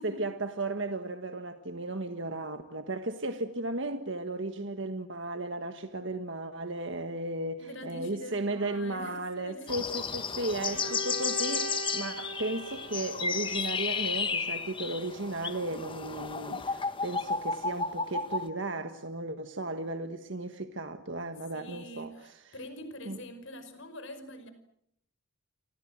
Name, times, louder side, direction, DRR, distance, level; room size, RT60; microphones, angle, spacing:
voice 1, 0.0-22.5 23.0-23.2, right 2 dB, 60° right, 1.6 m, -35 dB
voice 2, 7.6-9.7 10.7-11.0 21.5-24.5, left 1 dB, 65° left, 5.4 m, -45 dB
sound 1, 9.7-18.5, left 5 dB, 25° left, 1.3 m, -33 dB
Bowed string instrument, 10.7-14.5, right 2 dB, 90° right, 5.1 m, -41 dB
29.5 x 24.5 x 7.6 m
head